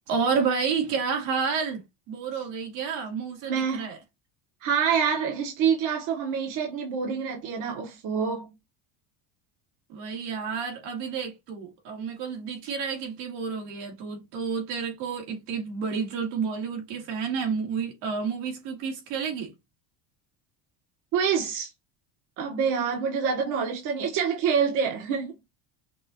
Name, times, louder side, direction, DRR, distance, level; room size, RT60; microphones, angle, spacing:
voice 1, 0.1-4.0 9.9-19.5, right 5 dB, 85° right, 2.4 m, -30 dB
voice 2, 3.4-3.9 4.6-8.5 21.1-21.7 22.4-25.3, right 7 dB, 55° right, 1.4 m, -26 dB
5.9 x 2.6 x 3.0 m
cardioid pair, 175°, 38 cm